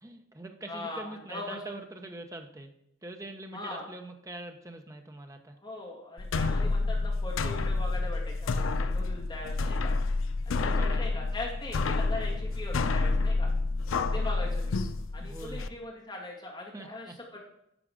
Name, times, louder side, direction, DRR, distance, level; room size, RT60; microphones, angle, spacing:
voice 1, 0.0-2.7 3.0-5.6 7.4-7.5 9.4-9.7 10.8-11.2 15.2-15.6 16.7-17.1, right 2 dB, 15° right, 5 dB, 0.7 m, -44 dB
voice 2, 0.7-1.8 3.5-3.9 5.6-9.9 10.5-13.5 14.1-14.8 15.1-17.4, left 2 dB, 25° left, -3 dB, 2.1 m, -40 dB
sound 1, 6.2-15.7, left 3 dB, 90° left, 0.5 m, -29 dB
10.0 x 4.7 x 4.9 m, 0.78 s
head